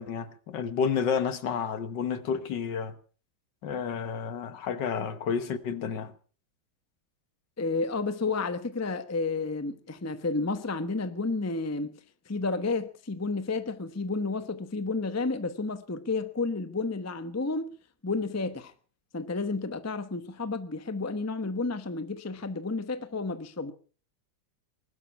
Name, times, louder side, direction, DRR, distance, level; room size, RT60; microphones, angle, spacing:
voice 1, 0.0-3.0 3.6-6.1, left 6 dB, 70° left, 1.8 m, -30 dB
voice 2, 7.6-12.0 12.3-17.7 18.0-18.7 19.1-23.7, left 3 dB, 15° left, 0.6 m, -31 dB
20.0 x 12.0 x 5.9 m
omnidirectional pair, 2.1 m